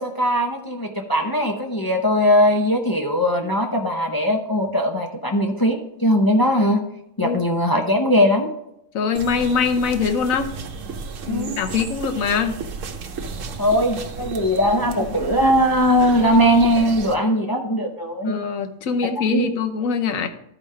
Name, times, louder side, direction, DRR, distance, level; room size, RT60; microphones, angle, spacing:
voice 1, 0.0-6.8 7.2-8.5 11.3-11.6 13.6-18.4 19.3-19.5, equal, 30° left, 2 dB, 0.4 m, -20 dB
voice 2, 8.9-10.5 11.3-12.6 14.2-14.3 18.2-20.3, left 5 dB, 80° left, 7 dB, 1.2 m, -23 dB
sound 1, 9.2-17.2, right 4 dB, 70° right, 1.1 m, -34 dB
13.0 x 5.0 x 3.2 m, 0.79 s
omnidirectional pair, 1.4 m